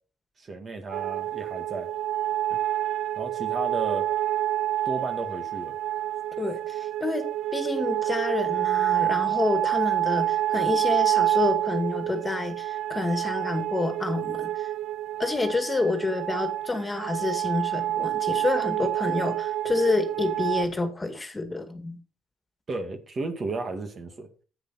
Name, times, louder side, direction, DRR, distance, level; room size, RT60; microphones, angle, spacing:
voice 1, 0.4-1.9 3.2-4.1 4.9-5.8 18.8-18.9 22.7-24.3, right 3 dB, 40° right, 1.8 m, -33 dB
sound 1, 0.9-20.6, right 13 dB, 80° right, 0.4 m, -28 dB
voice 2, 6.4-14.7 15.2-22.0, left 3 dB, 20° left, 2.1 m, -28 dB
10.0 x 8.4 x 4.1 m
cardioid pair, 90°, 0 cm